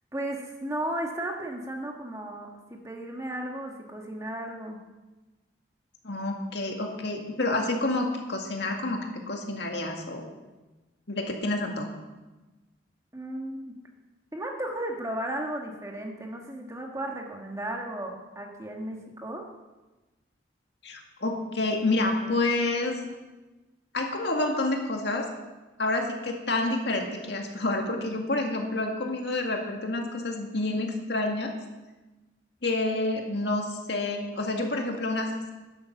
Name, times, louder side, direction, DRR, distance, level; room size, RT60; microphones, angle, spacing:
voice 1, 0.1-4.8 13.1-13.8 14.3-19.5, right 1 dB, 15° right, 1 dB, 1.5 m, -35 dB
voice 2, 6.0-10.3 11.1-12.0 20.8-23.0 23.9-25.3 25.8-31.5 32.6-35.5, left 2 dB, 65° left, 2 dB, 2.0 m, -28 dB
10.5 x 10.5 x 7.1 m, 1.1 s
head